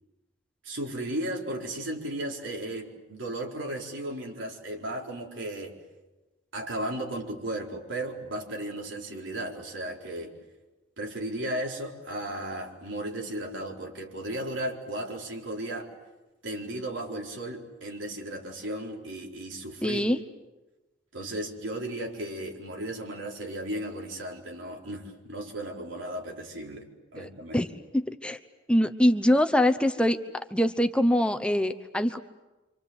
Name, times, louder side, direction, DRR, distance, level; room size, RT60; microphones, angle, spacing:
voice 1, 0.6-5.8 6.5-10.3 11.0-15.9 16.4-20.0 21.1-26.9 27.1-27.7, right 1 dB, 90° right, 0 dB, 4.5 m, -35 dB
voice 2, 19.8-20.2 27.2-27.7 27.9-28.4 28.7-32.2, equal, 5° left, 9 dB, 0.9 m, -24 dB
28.0 x 26.0 x 8.0 m, 1.1 s
head